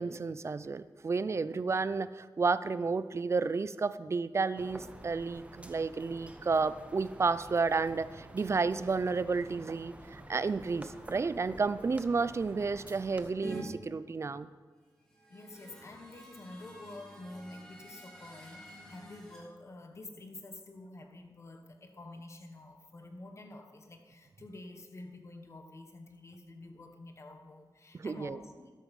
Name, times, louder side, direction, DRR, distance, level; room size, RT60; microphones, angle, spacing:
voice 1, 0.0-14.5 27.9-28.4, right 4 dB, 35° right, 15 dB, 0.4 m, -31 dB
sound 1, 4.6-13.3, right 1 dB, 15° right, 1.0 m, -50 dB
sound 2, 13.4-13.6 15.0-19.4, right 1 dB, 5° left, 3.1 m, -49 dB
voice 2, 15.3-28.7, left 2 dB, 35° left, 5 dB, 1.3 m, -49 dB
12.5 x 12.0 x 5.4 m, 1.5 s
wide cardioid pair, 170°, 8 cm